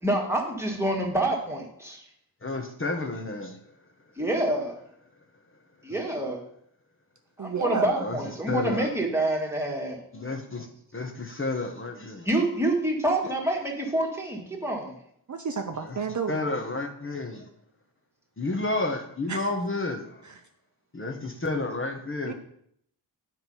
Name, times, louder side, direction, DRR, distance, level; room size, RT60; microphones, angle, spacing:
voice 1, 0.0-2.0 4.2-4.8 5.8-6.4 7.4-10.0 12.2-15.0, right 1 dB, 5° right, 0 dB, 1.7 m, -27 dB
voice 2, 2.4-3.6 8.0-8.2 8.5-8.9 10.1-10.7 10.9-12.3 15.8-16.0 16.3-17.5 18.4-20.2 20.9-22.3, left 2 dB, 30° left, 2 dB, 1.0 m, -31 dB
voice 3, 7.4-8.0 15.3-16.6 19.3-19.5 20.2-20.4 22.2-22.3, right 5 dB, 45° right, 5 dB, 0.7 m, -31 dB
9.4 x 4.6 x 5.4 m, 0.69 s
wide cardioid pair, 115°, 42 cm